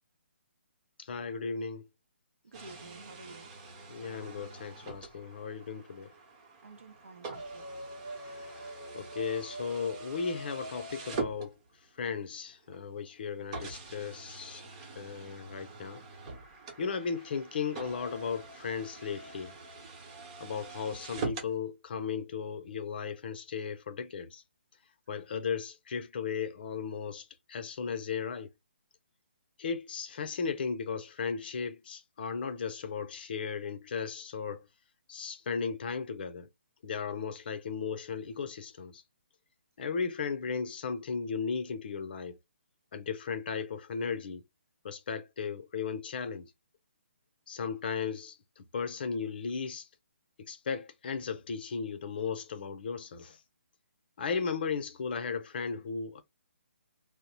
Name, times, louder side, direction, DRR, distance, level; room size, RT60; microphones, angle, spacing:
voice 1, 1.0-1.8 3.9-6.1 8.2-11.6 12.0-16.0 16.8-19.6 20.4-24.4 25.1-28.5 29.6-34.7 35.1-36.5 36.8-39.0 39.8-42.4 42.9-44.4 44.8-46.5 47.5-49.9 50.4-53.4 54.2-56.2, left 5 dB, 50° left, 0.6 m, -36 dB
voice 2, 2.4-3.5 6.6-7.7, right 3 dB, 80° right, 0.7 m, -51 dB
sound 1, 2.5-12.0 12.7-12.8 13.5-21.5, right 3 dB, 30° right, 0.9 m, -43 dB
3.0 x 2.0 x 2.9 m
figure-of-eight pair, 145°, 7 cm